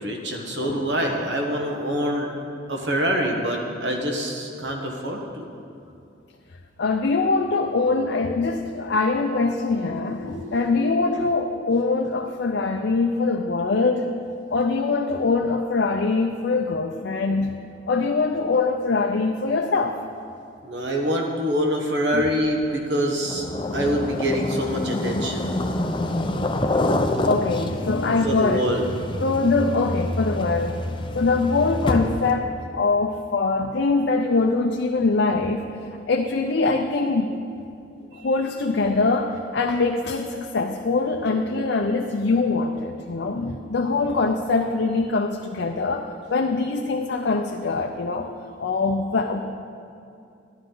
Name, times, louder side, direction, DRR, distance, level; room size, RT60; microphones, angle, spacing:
voice 1, 0.0-2.3 2.7-5.5 9.7-11.3 20.6-23.5 23.7-25.5 28.2-28.8 38.1-38.3, equal, 70° right, 1 dB, 1.2 m, -26 dB
voice 2, 0.6-0.9 6.8-14.1 14.5-17.5 17.9-20.0 22.1-22.3 27.3-28.6 29.2-30.8 31.1-35.6 36.1-37.4 38.2-48.3 48.6-49.4, left 3 dB, 70° left, 3 dB, 0.5 m, -23 dB
sound 1, 23.2-32.4, left 1 dB, 25° left, 0.6 m, -27 dB
12.5 x 11.0 x 3.9 m, 2.6 s
head